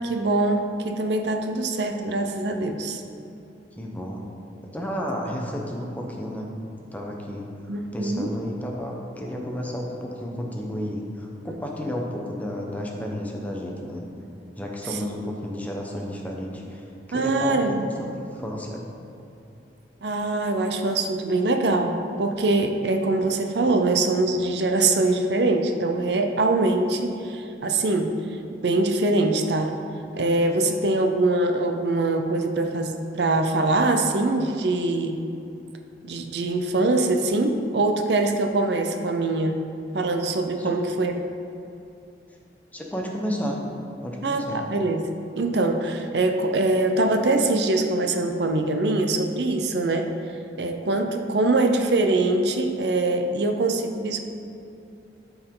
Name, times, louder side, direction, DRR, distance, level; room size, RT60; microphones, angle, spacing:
voice 1, 0.0-3.0 7.7-8.3 14.9-15.1 17.1-17.9 20.0-28.1 28.5-29.7 30.2-35.2 36.0-39.6 39.9-41.1 44.2-45.0 45.4-50.1 50.6-54.2, right 2 dB, 65° right, 5 dB, 0.6 m, -23 dB
voice 2, 3.8-4.2 4.7-6.5 6.9-7.4 7.9-14.0 14.6-18.8 40.6-40.7 42.7-43.6 44.0-44.6, equal, 10° left, -1 dB, 0.8 m, -32 dB
12.5 x 4.7 x 3.8 m, 2.7 s
head